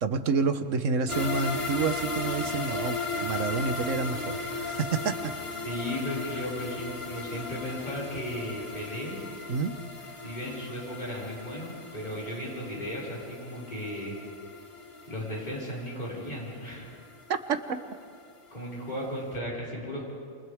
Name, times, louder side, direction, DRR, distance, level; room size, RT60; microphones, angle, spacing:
voice 1, 0.0-4.4 4.6-5.3 9.5-9.8 17.3-17.6, right 5 dB, 70° right, 9 dB, 1.4 m, -29 dB
sound 1, 1.1-18.2 18.5-18.6 19.0-19.1, left 3 dB, 50° left, 2.4 m, -36 dB
voice 2, 5.6-9.2 10.2-14.2 15.1-16.9 18.5-20.1, equal, 35° left, -6 dB, 6.0 m, -35 dB
29.0 x 27.0 x 3.6 m, 2.2 s
omnidirectional pair, 1.4 m